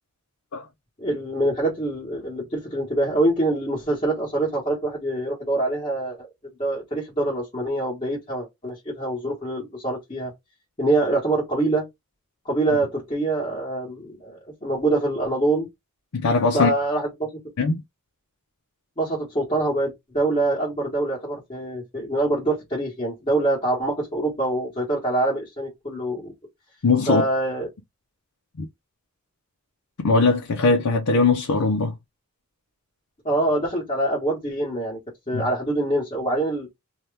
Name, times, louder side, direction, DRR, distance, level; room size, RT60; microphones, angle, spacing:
voice 1, 1.0-6.2 6.6-10.3 10.8-11.9 12.4-15.7 16.4-17.3 19.0-26.3 27.1-27.7 33.2-35.0 35.3-36.7, right 2 dB, 25° left, 1.2 m, -25 dB
voice 2, 16.1-16.7 17.6-17.8 26.8-27.2 28.6-28.7 30.0-31.9 35.3-35.5, left 3 dB, 85° left, 0.6 m, -20 dB
2.8 x 2.2 x 3.2 m
head